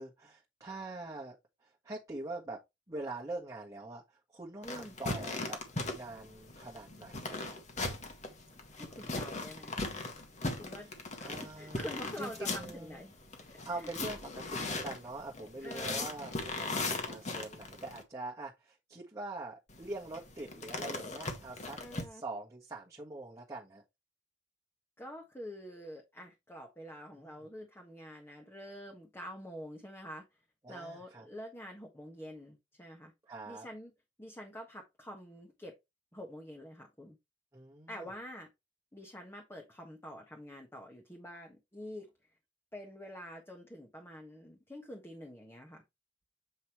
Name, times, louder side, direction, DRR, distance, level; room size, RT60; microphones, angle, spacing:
voice 1, 0.0-1.3 1.6-2.6 2.9-7.5 8.9-9.1 10.8-10.9 11.2-13.0 13.6-21.8 22.1-23.8 27.2-27.4 30.6-31.2 33.2-33.7 37.5-38.1, right 2 dB, 20° right, 1.4 m, -44 dB
sound 1, 4.6-18.0 19.7-22.0, left 2 dB, 40° left, 1.8 m, -39 dB
voice 2, 4.6-4.9 8.7-9.8 10.6-10.9 11.2-13.1 13.7-13.9 15.6-16.1 21.8-22.2 25.0-30.2 30.7-33.1 33.5-33.9 34.2-35.7 36.1-37.2 37.9-38.5 38.9-42.1 42.7-45.8, equal, 15° left, 1.4 m, -47 dB
7.9 x 5.4 x 3.1 m
head